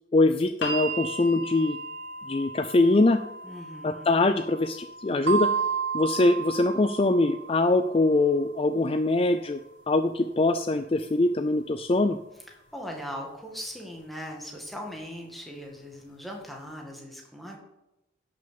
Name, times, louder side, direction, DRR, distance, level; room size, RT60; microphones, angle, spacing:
voice 1, 0.1-1.8 2.3-3.2 3.8-5.5 5.9-9.6 9.9-12.2, left 2 dB, 30° left, 10 dB, 0.4 m, -23 dB
sound 1, 0.6-12.7 13.8-13.9, right 2 dB, 65° left, 2.3 m, -41 dB
voice 2, 3.4-4.2 12.4-17.6, equal, ahead, 0 dB, 1.9 m, -40 dB
sound 2, 5.3-7.8, right 6 dB, 60° right, 0.5 m, -30 dB
11.0 x 6.3 x 6.9 m, 0.92 s
head